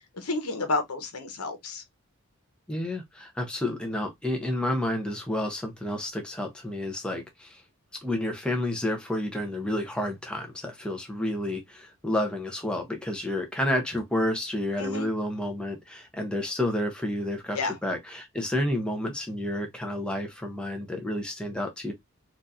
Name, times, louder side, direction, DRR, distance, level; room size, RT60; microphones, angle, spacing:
voice 1, 0.2-1.8 14.8-15.1 17.5-17.8, left 3 dB, 85° left, 1.0 m, -30 dB
voice 2, 2.7-7.6 8.0-21.9, left 1 dB, 5° left, 0.7 m, -30 dB
4.4 x 2.5 x 2.5 m
head